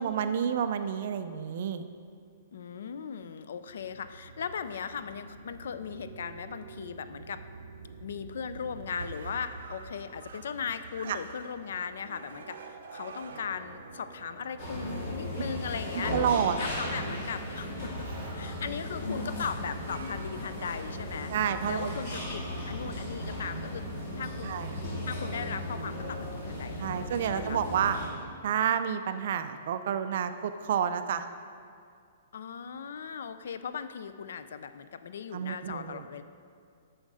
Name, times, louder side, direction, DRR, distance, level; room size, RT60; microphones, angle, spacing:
voice 1, 0.0-1.8 11.0-11.2 16.1-16.6 21.3-21.9 24.4-24.8 26.8-28.0 28.4-31.3 35.3-36.1, right 8 dB, 45° right, 10 dB, 0.4 m, -29 dB
voice 2, 2.5-7.4 8.0-16.1 16.6-18.1 18.3-21.3 21.6-23.9 24.2-24.8 25.0-27.0 27.3-27.6 32.3-36.2, left 6 dB, 70° left, 12 dB, 0.4 m, -38 dB
sound 1, 3.7-21.0, right 4 dB, 70° right, 0.8 m, -48 dB
sound 2, 14.6-28.1, left 1 dB, 40° left, 2.3 m, -36 dB
7.7 x 6.4 x 4.8 m, 2.3 s
hypercardioid pair, 175°, 0 cm